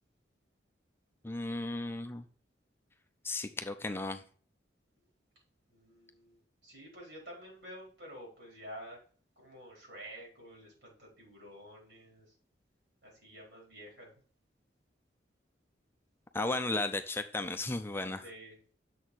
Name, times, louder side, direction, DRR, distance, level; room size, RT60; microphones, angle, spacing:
voice 1, 1.2-2.3 3.2-4.2 16.3-18.2, left 2 dB, 15° left, 7 dB, 0.5 m, -34 dB
voice 2, 5.7-9.0 9.4-12.3 13.0-14.2 18.2-18.6, equal, 70° right, -2 dB, 4.7 m, -50 dB
6.9 x 4.2 x 6.3 m, 0.43 s
head